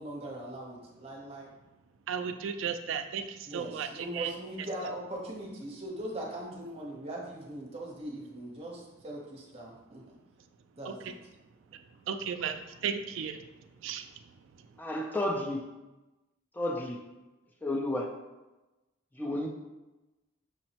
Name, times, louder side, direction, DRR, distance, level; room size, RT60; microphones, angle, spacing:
voice 1, 0.0-1.5 3.4-10.2 10.7-11.2, right 1 dB, 30° right, -3 dB, 0.7 m, -40 dB
voice 2, 2.1-4.3 10.9-11.0 12.0-14.1 14.6-14.7, right 7 dB, 65° right, 7 dB, 0.3 m, -35 dB
voice 3, 14.8-15.6 16.5-17.0 17.6-18.1 19.2-19.5, left 1 dB, 10° left, 0 dB, 0.4 m, -31 dB
6.0 x 2.0 x 2.8 m, 1.1 s
head